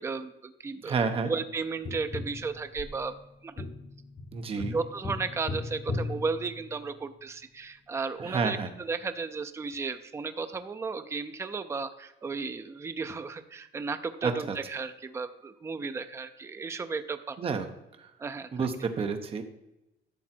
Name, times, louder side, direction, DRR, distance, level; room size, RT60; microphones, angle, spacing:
voice 1, 0.0-0.9 1.2-3.2 3.4-3.7 4.6-17.4 18.2-18.7, right 4 dB, 15° right, 9 dB, 0.5 m, -34 dB
voice 2, 0.8-1.3 4.3-4.8 8.2-8.7 14.2-14.6 17.4-17.7 18.0-18.1 18.5-19.4, right 5 dB, 30° right, 6 dB, 1.0 m, -30 dB
Tap, 1.9-7.1 9.7-9.8, left 3 dB, 25° left, 0.7 m, -38 dB
11.5 x 7.2 x 4.5 m, 0.92 s
cardioid pair, 175°, 19 cm